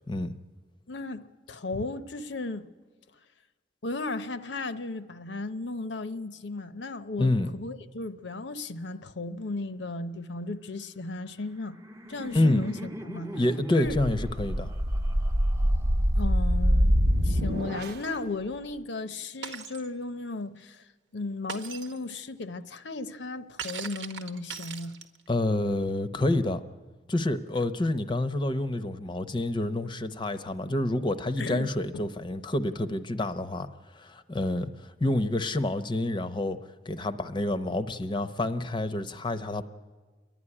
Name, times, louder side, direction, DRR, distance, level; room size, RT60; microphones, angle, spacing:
voice 1, 0.9-2.7 3.8-11.8 12.1-12.8 13.0-13.4 13.7-14.0 16.2-20.8 21.1-24.9 31.4-31.7 31.9-32.1, left 2 dB, 75° left, 0.8 m, -35 dB
voice 2, 7.2-7.5 12.3-12.6 13.3-14.7 25.3-26.6 27.1-33.7 33.9-36.6 36.9-39.6, left 1 dB, 25° left, 0.7 m, -28 dB
Laughter, 11.3-16.3, right 1 dB, 15° right, 0.7 m, -43 dB
sound 1, 13.8-18.2, equal, 65° right, 0.9 m, -25 dB
Shatter, 19.4-19.9 21.5-22.0 23.6-25.3, right 6 dB, 90° right, 1.1 m, -39 dB
28.5 x 11.0 x 9.8 m
head